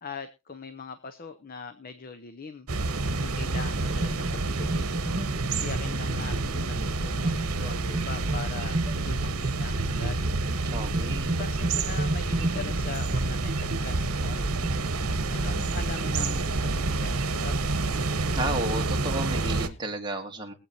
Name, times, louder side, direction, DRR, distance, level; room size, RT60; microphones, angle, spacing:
voice 1, 0.0-2.7 3.1-4.9 5.6-10.2 11.4-14.6 15.3-17.7, left 5 dB, 40° left, 9 dB, 0.7 m, -41 dB
sound 1, 2.7-19.7, right 3 dB, 75° right, 1.1 m, -28 dB
sound 2, 3.6-14.8, right 2 dB, 45° right, 1.4 m, -33 dB
sound 3, 4.2-9.3, right 1 dB, 90° left, 2.4 m, -48 dB
voice 2, 10.6-11.3 18.3-20.5, right 1 dB, 20° right, 1 dB, 1.8 m, -32 dB
22.0 x 8.3 x 2.9 m, 0.28 s
head